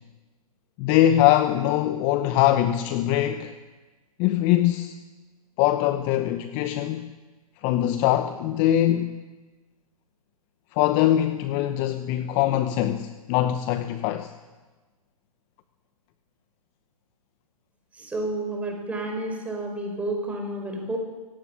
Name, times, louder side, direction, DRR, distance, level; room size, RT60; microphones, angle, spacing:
voice 1, 0.8-3.5 4.2-5.0 5.6-7.1 7.6-9.2 10.8-14.3, left 12 dB, 25° left, 0.9 m, -22 dB
voice 2, 18.0-21.0, right 2 dB, 5° right, 5.0 m, -30 dB
24.0 x 17.5 x 8.9 m
hypercardioid pair, 145°, 19 cm